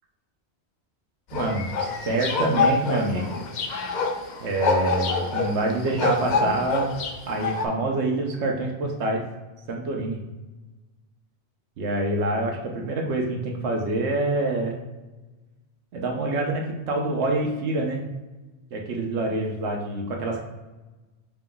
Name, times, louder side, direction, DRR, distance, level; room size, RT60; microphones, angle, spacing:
sound 1, 1.3-7.7, left 4 dB, 55° left, 0.6 m, -26 dB
voice 1, 1.3-3.4 4.4-6.9 7.3-9.2 9.7-10.2 11.8-14.8 15.9-18.0 18.7-20.4, right 2 dB, 80° right, 0 dB, 1.0 m, -26 dB
5.7 x 2.2 x 3.8 m, 1.1 s
omnidirectional pair, 1.2 m